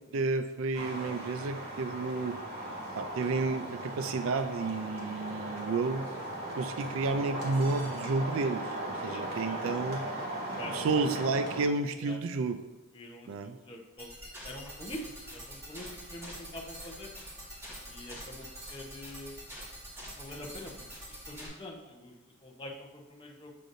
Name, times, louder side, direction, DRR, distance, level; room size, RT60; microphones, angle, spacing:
voice 1, 0.0-2.4 3.0-6.1 6.6-10.1 10.7-12.6 13.3-13.6, right 3 dB, 65° right, 10 dB, 0.3 m, -31 dB
sound 1, 0.7-11.6, right 1 dB, 45° right, 1.8 m, -38 dB
voice 2, 8.9-9.8 10.6-11.1 12.0-12.2 12.9-14.2 14.4-17.1 17.9-19.4 20.2-23.5, left 1 dB, 20° left, -1 dB, 0.8 m, -46 dB
sound 2, 14.0-21.5, equal, 10° right, 1.9 m, -45 dB
7.4 x 6.5 x 2.6 m, 1.0 s
head